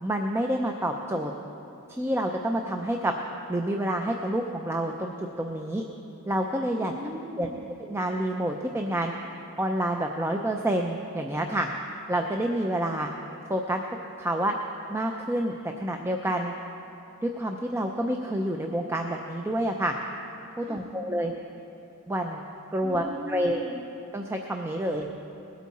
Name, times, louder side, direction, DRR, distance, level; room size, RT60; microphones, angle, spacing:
voice 1, 0.0-1.3 1.9-3.2 3.5-5.8 6.3-6.9 7.4-7.5 7.8-9.1 9.6-11.7 12.1-13.1 13.5-13.8 14.2-14.6 14.9-16.5 17.2-19.9 20.6-21.3 22.1-22.4 22.7-23.7 24.1-25.1, right 1 dB, 10° right, 3 dB, 0.5 m, -28 dB
voice 2, 6.9-7.7 20.6-21.2 22.8-23.8 24.8-25.2, equal, 30° right, 0 dB, 1.6 m, -40 dB
20.5 x 8.3 x 4.2 m, 2.8 s
head